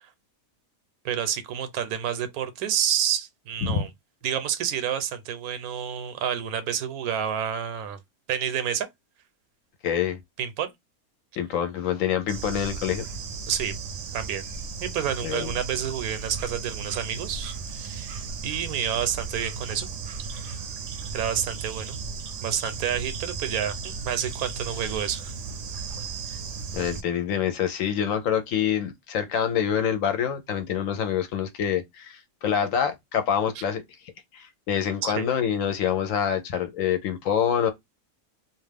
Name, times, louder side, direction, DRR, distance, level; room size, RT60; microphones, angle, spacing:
voice 1, 1.0-3.9 4.2-8.0 8.3-8.9 10.4-10.7 13.5-13.7 14.1-14.4 14.8-18.2 18.4-19.9 21.1-22.0 22.4-25.3 35.0-35.2, right 9 dB, 85° right, 1.1 m, -29 dB
voice 2, 9.8-10.2 11.4-13.1 15.2-15.5 26.7-33.8 34.3-37.7, left 8 dB, 70° left, 0.9 m, -26 dB
Bird / Insect, 12.3-27.0, right 5 dB, 65° right, 0.8 m, -35 dB
2.5 x 2.3 x 3.3 m
omnidirectional pair, 1.6 m